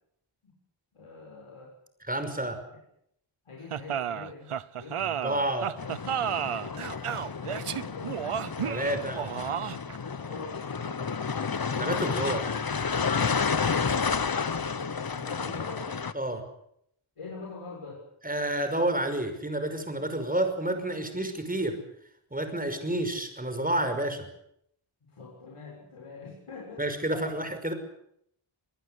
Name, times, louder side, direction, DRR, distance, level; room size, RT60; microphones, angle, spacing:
voice 1, 0.9-1.7 3.5-4.5 4.8-5.1 6.5-8.2 8.9-9.2 10.1-11.1 14.3-15.9 17.2-18.0 25.1-27.3, left 4 dB, 85° left, -1 dB, 7.1 m, -44 dB
voice 2, 2.1-2.6 5.0-5.7 8.6-9.2 11.8-12.4 16.1-16.4 18.2-21.8 22.3-24.2 26.8-27.7, right 1 dB, 15° right, 8 dB, 5.7 m, -29 dB
sound 1, 3.7-10.0, right 9 dB, 85° right, 1.0 m, -32 dB
sound 2, 5.8-16.1, left 5 dB, 45° left, 1.3 m, -31 dB
26.0 x 19.5 x 8.3 m, 0.72 s
wide cardioid pair, 95°, 50 cm